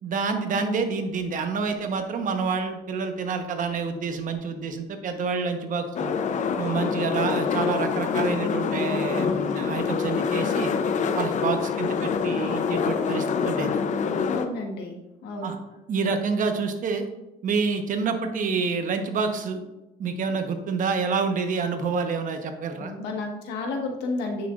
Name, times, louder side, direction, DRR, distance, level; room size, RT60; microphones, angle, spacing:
voice 1, 0.0-6.1 6.6-10.7 11.2-13.8 15.4-15.6 15.9-17.1 17.4-19.6 20.0-22.9, right 5 dB, 50° right, 6 dB, 1.0 m, -28 dB
sound 1, 6.0-14.5, left 6 dB, 45° left, 0.5 m, -26 dB
voice 2, 14.3-15.5 22.8-24.5, left 2 dB, 85° left, 2 dB, 1.4 m, -32 dB
9.0 x 6.2 x 2.4 m, 0.97 s
cardioid pair, 110°, 17 cm